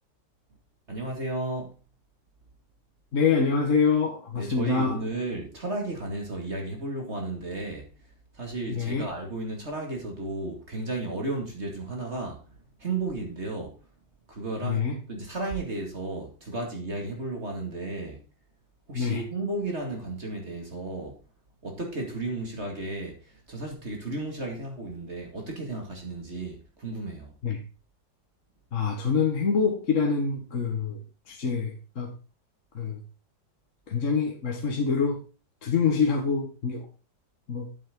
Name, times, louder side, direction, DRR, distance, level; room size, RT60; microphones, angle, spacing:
voice 1, 0.9-1.7 4.3-12.4 12.8-13.8 14.3-18.2 18.9-21.2 21.6-27.3, right 2 dB, 35° right, 2.5 m, -34 dB
voice 2, 3.1-5.0 8.7-9.1 14.6-15.0 18.9-19.2 27.4-27.6 28.7-31.0 31.3-32.1 32.7-33.0 33.9-35.2 35.6-36.9 37.5-37.7, left 5 dB, 45° left, 1.7 m, -25 dB
8.5 x 8.2 x 3.8 m
omnidirectional pair, 2.0 m